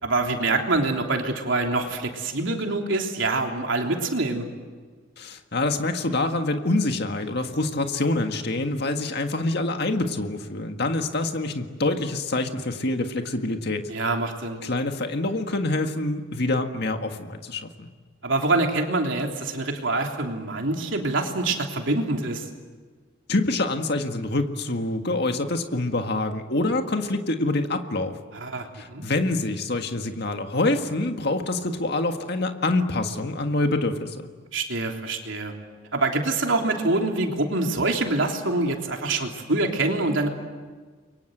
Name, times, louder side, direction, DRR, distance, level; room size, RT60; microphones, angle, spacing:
voice 1, 0.0-4.5 13.9-14.6 18.2-22.5 28.3-29.0 34.5-35.5 35.9-40.3, right 2 dB, 70° right, 2 dB, 3.4 m, -25 dB
voice 2, 5.2-13.9 14.6-17.9 23.3-28.2 28.7-34.3, left 2 dB, 55° left, 6 dB, 1.8 m, -26 dB
30.0 x 23.5 x 8.0 m, 1.5 s
head